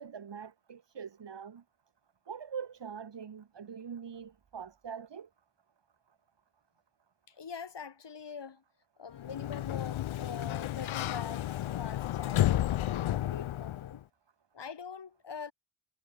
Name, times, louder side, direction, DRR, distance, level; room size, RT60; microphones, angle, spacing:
voice 1, 0.0-1.6 2.3-5.3, right 7 dB, 60° right, 2.2 m, -43 dB
voice 2, 7.3-8.6 9.0-14.0 14.5-15.5, left 6 dB, 60° left, 4.0 m, -44 dB
Sliding door, 9.1-14.0, left 13 dB, 80° left, 0.6 m, -32 dB
wide cardioid pair, 145°, 47 cm